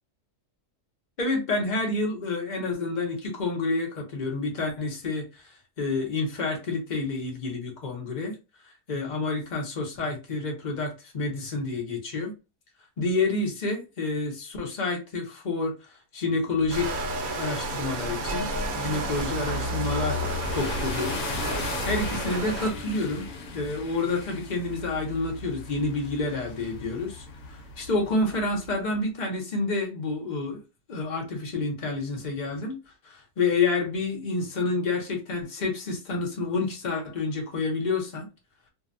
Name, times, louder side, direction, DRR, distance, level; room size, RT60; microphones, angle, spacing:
voice 1, 1.2-5.4 5.8-8.3 8.9-12.3 13.0-15.7 16.1-17.0 17.3-18.5 18.7-20.2 20.5-21.2 21.8-23.3 23.5-27.2 27.8-30.6 30.9-32.7 33.0-38.3, left 3 dB, 45° left, 0.6 m, -28 dB
sound 1, 16.6-28.7, left 3 dB, 70° left, 1.0 m, -36 dB
sound 2, 16.7-22.7, right 2 dB, 70° right, 1.0 m, -32 dB
2.6 x 2.1 x 2.5 m
omnidirectional pair, 1.7 m